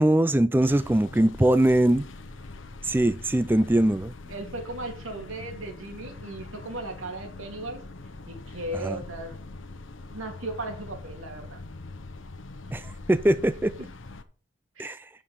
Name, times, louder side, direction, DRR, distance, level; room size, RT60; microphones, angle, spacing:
voice 1, 0.0-2.1 2.8-4.1 8.7-9.0 12.7-13.7 14.8-15.1, right 1 dB, 10° right, 0.3 m, -22 dB
sound 1, 0.6-14.2, left 2 dB, 75° left, 0.9 m, -43 dB
voice 2, 4.2-7.8 8.3-9.4 10.1-11.6 13.8-13.9 14.8-15.0, right 2 dB, 90° right, 2.7 m, -36 dB
8.7 x 6.7 x 5.4 m
head